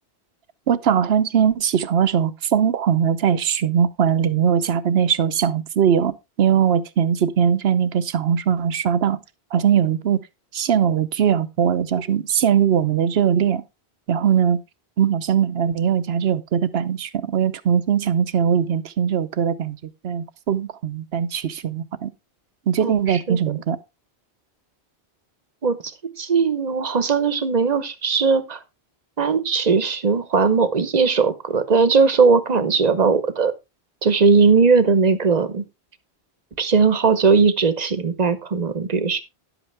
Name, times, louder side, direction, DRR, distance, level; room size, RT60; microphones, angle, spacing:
voice 1, 0.7-9.2 9.5-10.2 10.5-13.6 14.1-14.6 15.0-19.8 20.0-22.1 22.7-23.8, right 8 dB, 75° right, 1.0 m, -20 dB
voice 2, 22.8-23.4 25.6-25.8 26.2-28.6 29.2-33.5 34.0-35.6 36.6-39.2, right 5 dB, 40° right, 1.1 m, -18 dB
11.0 x 8.1 x 3.4 m
omnidirectional pair, 1.1 m